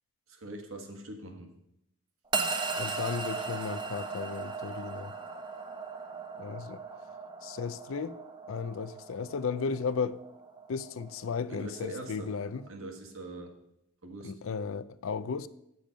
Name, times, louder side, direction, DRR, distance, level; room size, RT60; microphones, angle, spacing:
voice 1, 0.3-1.5 11.5-12.3 12.7-13.5 14.0-14.3, right 2 dB, 65° right, 1.5 m, -42 dB
sound 1, 2.3-12.7, right 4 dB, 20° right, 0.7 m, -38 dB
voice 2, 2.8-5.1 6.4-6.8 7.4-8.2 8.5-10.2 10.7-12.6 14.2-15.5, left 5 dB, 65° left, 0.4 m, -35 dB
9.0 x 7.0 x 5.1 m
head